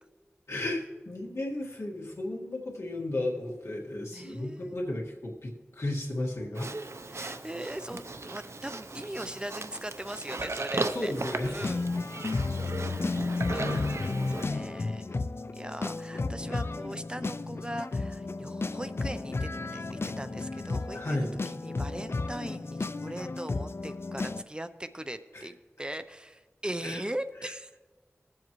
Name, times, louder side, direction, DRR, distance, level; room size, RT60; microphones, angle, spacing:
voice 1, 0.5-6.7 10.8-11.6 20.9-21.3 25.3-25.5 26.8-27.0 27.4-27.5, left 1 dB, 85° left, -2 dB, 1.8 m, -34 dB
voice 2, 4.1-4.7 7.1-11.1 11.5-11.9 13.0-15.2 15.5-21.3 21.6-27.7, right 1 dB, 20° right, 11 dB, 0.5 m, -40 dB
Livestock farm animals working animals, 6.5-14.5, right 3 dB, 75° right, 0.6 m, -37 dB
sound 1, 11.6-24.4, left 3 dB, 60° left, 0.4 m, -33 dB
20.5 x 7.5 x 3.1 m, 1.3 s
wide cardioid pair, 45°, 5 cm